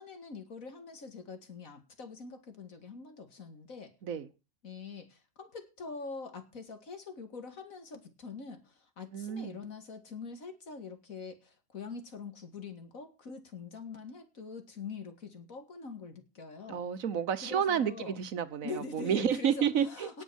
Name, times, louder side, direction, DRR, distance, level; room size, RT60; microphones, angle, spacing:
voice 1, 0.0-3.9 4.6-16.8 17.4-18.2 18.6-20.2, left 4 dB, 65° left, 2.6 m, -44 dB
voice 2, 9.1-9.6 16.7-20.2, right 8 dB, 70° right, 1.4 m, -30 dB
18.5 x 6.2 x 6.4 m
omnidirectional pair, 1.5 m